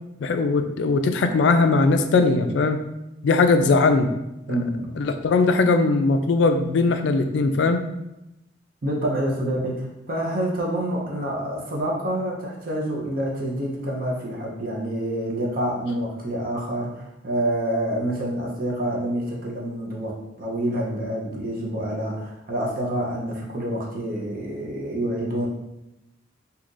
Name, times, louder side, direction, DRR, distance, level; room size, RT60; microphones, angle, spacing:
voice 1, 0.2-2.8 3.2-4.1 5.0-7.9, left 3 dB, 65° left, 8 dB, 0.3 m, -20 dB
voice 2, 4.5-5.0 8.8-25.5, right 1 dB, 50° right, -2 dB, 0.6 m, -27 dB
2.7 x 2.4 x 3.8 m, 0.90 s
head